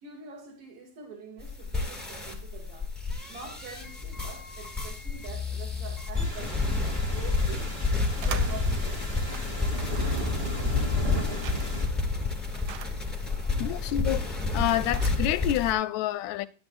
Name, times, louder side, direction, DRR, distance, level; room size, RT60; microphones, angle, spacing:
voice 1, 0.0-2.9 3.3-7.7 8.2-9.2 10.0-10.8 13.3-13.9, right 5 dB, 55° right, 3.3 m, -45 dB
sound 1, 1.4-15.7, left 3 dB, ahead, 1.7 m, -30 dB
sound 2, 6.1-11.9, left 1 dB, 20° right, 1.9 m, -34 dB
sound 3, 7.4-15.6, right 9 dB, 80° right, 2.1 m, -46 dB
voice 2, 13.6-14.2 14.5-16.5, left 13 dB, 80° left, 1.8 m, -27 dB
11.0 x 10.5 x 2.5 m
omnidirectional pair, 3.4 m